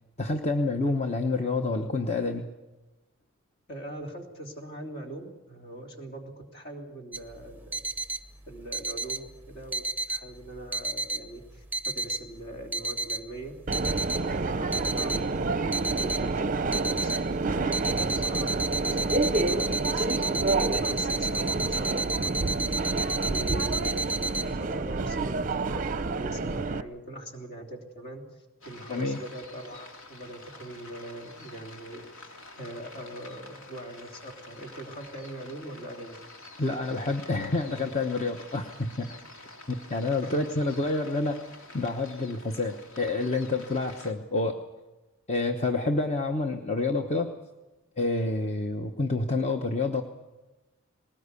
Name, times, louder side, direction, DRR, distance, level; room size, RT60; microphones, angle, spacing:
voice 1, 0.2-2.5 28.9-29.2 36.6-39.2 39.7-41.4 41.7-44.6 45.3-47.4 48.0-50.0, left 3 dB, 30° left, 4 dB, 1.0 m, -28 dB
voice 2, 3.7-7.9 8.5-13.5 14.2-17.1 17.4-18.5 18.8-20.4 20.8-28.2 28.7-36.2 40.2-40.8, right 1 dB, 50° left, 2 dB, 3.4 m, -42 dB
sound 1, 7.1-24.4, right 3 dB, 10° right, 0.8 m, -32 dB
Subway metro underground, 13.7-26.8, right 3 dB, 40° right, 0.6 m, -28 dB
sound 2, 28.6-44.1, left 2 dB, 75° left, 2.7 m, -48 dB
20.5 x 19.0 x 8.4 m, 1.1 s
head